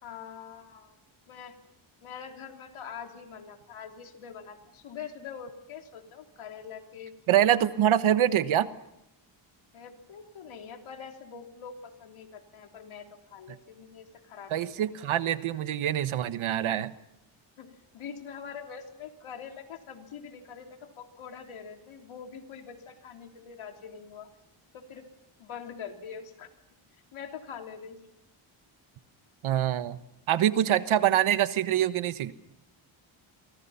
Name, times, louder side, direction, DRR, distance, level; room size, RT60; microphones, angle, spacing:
voice 1, 0.0-0.9 1.3-1.5 2.0-7.1 7.6-7.7 9.7-14.8 17.6-24.3 24.7-25.0 25.4-26.5 27.1-28.0, left 7 dB, 80° left, 4 dB, 3.3 m, -44 dB
voice 2, 7.3-8.7 14.5-16.9 29.4-30.0 30.3-32.3, right 11 dB, 80° right, 12 dB, 1.3 m, -25 dB
30.0 x 24.0 x 5.7 m, 0.85 s
cardioid pair, 115°, 48 cm